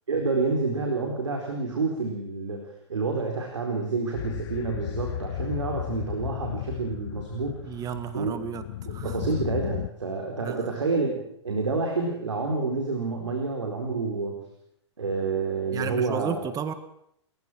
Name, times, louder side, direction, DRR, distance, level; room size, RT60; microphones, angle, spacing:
voice 1, 0.1-7.8 8.1-8.4 8.9-14.4 15.0-16.4, right 3 dB, 90° right, 2 dB, 4.3 m, -29 dB
sound 1, 4.1-9.9, left 14 dB, 60° left, 0.8 m, -34 dB
voice 2, 7.6-8.6 8.9-9.2 10.4-10.7 15.7-16.7, right 8 dB, 25° right, 11 dB, 1.8 m, -33 dB
29.5 x 15.5 x 6.3 m, 0.73 s
hypercardioid pair, 120°, 15 cm